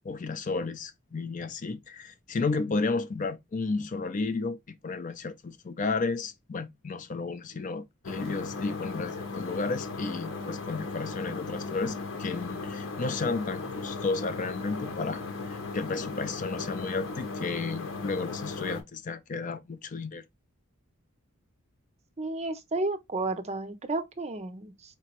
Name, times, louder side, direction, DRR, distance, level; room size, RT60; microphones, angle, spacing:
voice 1, 0.0-4.6 4.8-20.2, left 4 dB, 40° left, 0.4 m, -33 dB
sound 1, 8.0-18.8, left 3 dB, 75° left, 0.9 m, -37 dB
voice 2, 22.2-25.0, right 2 dB, 30° right, 0.5 m, -32 dB
4.3 x 3.0 x 2.9 m
head